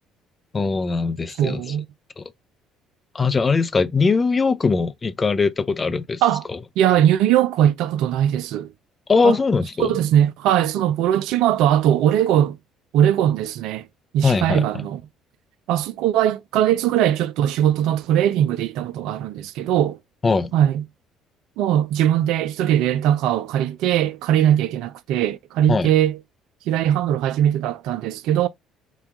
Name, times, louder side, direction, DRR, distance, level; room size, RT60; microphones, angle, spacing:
voice 1, 0.5-1.6 2.2-2.3 3.1-6.2 9.1-9.9 14.2-14.6 20.2-20.5 25.7-25.9, left 4 dB, 30° left, 0.5 m, -20 dB
voice 2, 1.4-1.9 6.2-6.4 6.8-8.7 9.2-9.4 9.8-12.6 12.9-13.8 14.1-15.0 15.7-20.0 20.5-20.8 21.6-26.2 26.7-28.5, right 11 dB, 65° right, 0.3 m, -20 dB
4.2 x 2.3 x 3.5 m
hypercardioid pair, 55°, 0 cm